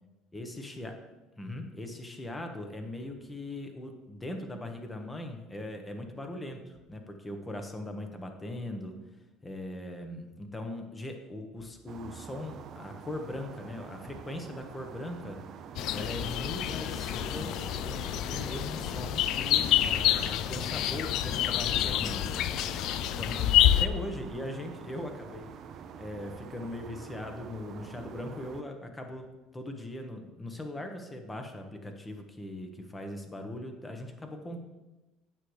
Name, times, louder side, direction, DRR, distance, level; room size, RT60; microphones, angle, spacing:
voice 1, 0.3-0.9 1.4-8.9 9.4-15.4 15.9-17.5 17.8-22.2 23.0-25.5 26.0-29.2 29.5-34.6, left 1 dB, 15° left, 5 dB, 1.2 m, -40 dB
sound 1, 11.9-28.6, right 7 dB, 55° right, 0.5 m, -46 dB
sound 2, 15.8-23.9, left 12 dB, 65° left, 0.4 m, -28 dB
9.0 x 6.5 x 3.3 m, 1.1 s
supercardioid pair, 100°, 0 cm